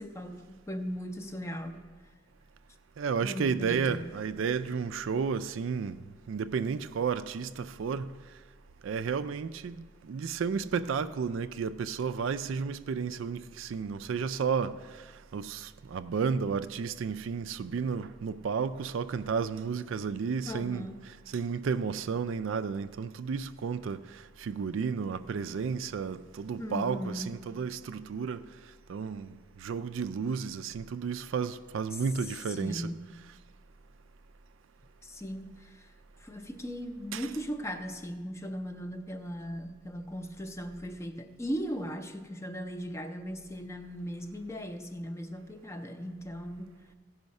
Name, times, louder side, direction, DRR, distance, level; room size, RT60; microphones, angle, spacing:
voice 1, 0.0-1.8 3.2-4.1 20.5-21.0 26.6-27.4 31.9-32.0 32.5-33.0 35.0-35.9 36.2-46.7, equal, 15° left, 0.5 m, -38 dB
voice 2, 3.0-6.0 6.3-8.1 8.8-28.4 28.9-32.9 37.1-37.3, right 6 dB, 65° right, 0.3 m, -32 dB
16.0 x 5.6 x 5.3 m
head